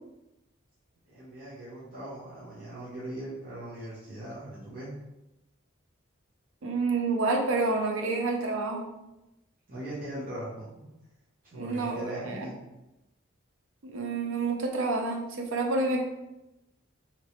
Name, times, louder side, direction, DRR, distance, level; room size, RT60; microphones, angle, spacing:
voice 1, 1.1-5.0 9.7-10.9 11.4-12.5, right 1 dB, 40° right, -10 dB, 0.8 m, -40 dB
voice 2, 6.6-8.9 11.5-12.5 13.8-16.0, right 3 dB, 80° right, 1 dB, 0.6 m, -28 dB
3.0 x 2.9 x 2.9 m, 0.94 s
head